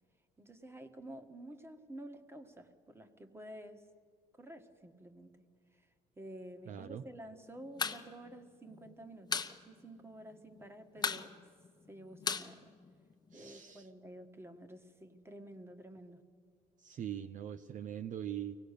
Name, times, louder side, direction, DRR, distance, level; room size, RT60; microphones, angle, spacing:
voice 1, 0.4-3.8 4.4-5.3 6.2-11.3 11.9-12.7 13.3-16.2, right 1 dB, 15° right, 8 dB, 1.6 m, -50 dB
voice 2, 6.7-7.0 13.3-13.9 16.8-18.6, right 10 dB, 50° right, 11 dB, 0.6 m, -42 dB
sound 1, 7.7-8.0 8.3-8.4 8.7-9.5 9.9-10.0 10.2-10.6 11.0-13.3, left 5 dB, 25° left, 1.1 m, -36 dB
24.0 x 18.0 x 6.7 m, 2.3 s
cardioid pair, 110°, 17 cm